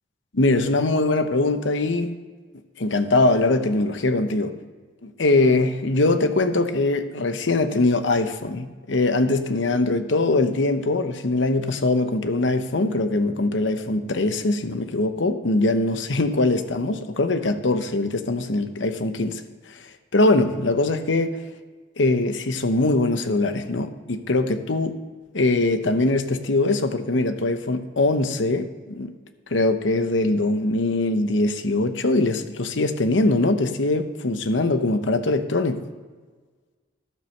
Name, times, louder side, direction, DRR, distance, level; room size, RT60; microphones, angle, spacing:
voice 1, 0.3-2.1 2.8-4.6 5.0-19.4 19.7-19.8 20.1-21.4 22.0-25.0 25.3-29.1 29.5-35.8, left 2 dB, 85° left, 9 dB, 0.8 m, -22 dB
11.5 x 7.5 x 6.6 m, 1.4 s
head